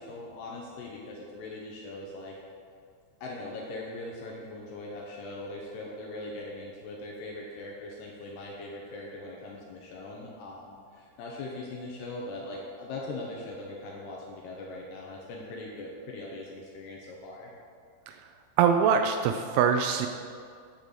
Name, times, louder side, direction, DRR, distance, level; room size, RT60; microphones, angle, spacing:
voice 1, 0.0-2.3 3.2-17.5, left 2 dB, 75° left, -2 dB, 2.6 m, -40 dB
voice 2, 18.6-20.1, right 7 dB, 85° right, 6 dB, 2.8 m, -23 dB
10.5 x 5.3 x 6.7 m, 2.2 s
omnidirectional pair, 5.7 m